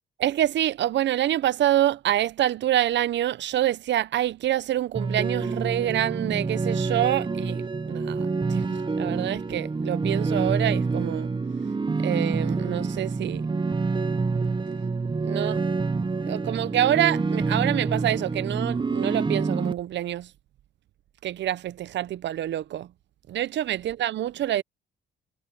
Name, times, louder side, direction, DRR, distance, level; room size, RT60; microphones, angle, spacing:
voice 1, 0.2-11.3 12.0-13.5 15.2-15.6 16.3-20.3 21.2-22.9 23.3-24.6, right 12 dB, 65° right, 0.7 m, -26 dB
sound 1, 5.0-19.7, right 4 dB, 25° right, 1.1 m, -27 dB
cardioid pair, 90°, 20 cm